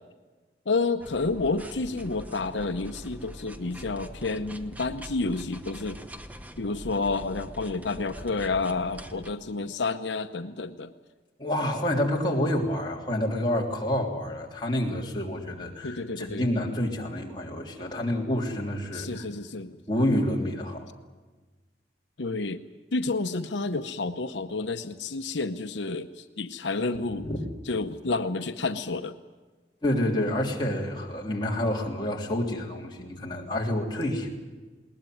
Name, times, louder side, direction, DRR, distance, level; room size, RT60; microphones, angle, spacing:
voice 1, 0.7-6.0 6.6-10.9 15.8-16.4 18.9-19.8 22.2-22.6 22.9-27.3 27.7-29.2, left 3 dB, 90° left, 9 dB, 0.9 m, -30 dB
sound 1, 1.0-9.3, equal, 10° right, 1.0 m, -43 dB
voice 2, 11.4-19.3 19.9-20.9 27.2-27.5 29.8-34.3, left 1 dB, 25° left, -1 dB, 3.3 m, -28 dB
20.5 x 19.5 x 9.3 m, 1.3 s
head